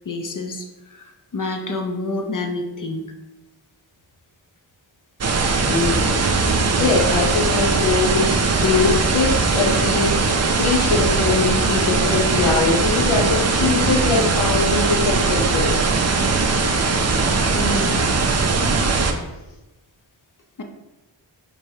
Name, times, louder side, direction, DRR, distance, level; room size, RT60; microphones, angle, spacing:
voice 1, 0.0-3.0 17.4-18.1 20.6-20.7, left 2 dB, 40° left, 3 dB, 0.6 m, -28 dB
sound 1, 5.2-19.1, right 4 dB, 35° right, 0.4 m, -20 dB
voice 2, 5.7-6.3 6.8-8.4 8.6-15.8, left 4 dB, 85° left, -1 dB, 0.9 m, -22 dB
4.3 x 3.2 x 2.7 m, 1.0 s
cardioid pair, 55°, 48 cm